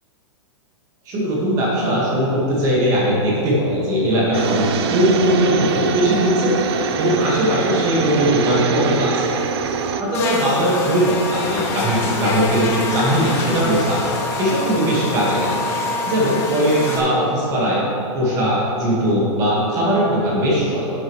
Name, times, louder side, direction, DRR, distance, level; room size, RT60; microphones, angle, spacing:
voice 1, 1.0-6.6 7.0-9.2 10.0-15.6 16.1-17.8 18.1-20.9, equal, 20° right, -5 dB, 1.6 m, -19 dB
sound 1, 4.3-10.0, right 6 dB, 55° right, 0.6 m, -24 dB
Buzz, 10.1-17.0, left 3 dB, 15° left, 0.8 m, -26 dB
10.5 x 8.0 x 3.1 m, 3.0 s
supercardioid pair, 180°, 16 cm